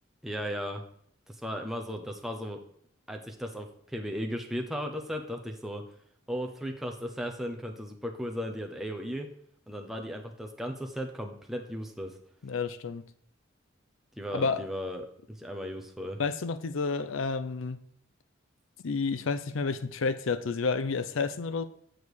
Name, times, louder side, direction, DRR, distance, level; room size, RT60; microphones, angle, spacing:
voice 1, 0.2-0.8 1.3-2.6 3.1-5.8 6.3-9.3 9.7-12.2 14.2-16.2, equal, ahead, 2 dB, 0.7 m, -36 dB
voice 2, 12.4-13.0 14.3-14.6 16.2-17.8 18.8-21.6, left 4 dB, 85° left, 13 dB, 0.6 m, -30 dB
7.1 x 6.3 x 4.8 m, 0.67 s
head